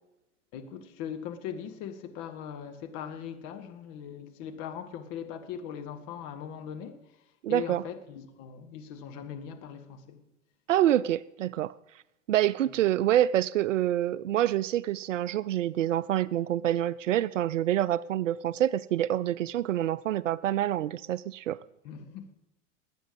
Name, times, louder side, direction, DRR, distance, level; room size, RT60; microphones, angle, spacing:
voice 1, 0.5-7.1 7.5-10.2 21.8-22.3, left 8 dB, 50° left, 1.9 m, -40 dB
voice 2, 7.4-7.8 10.7-11.7 12.3-21.6, right 12 dB, 75° right, 0.5 m, -26 dB
19.0 x 9.2 x 5.2 m
figure-of-eight pair, 85°, 37 cm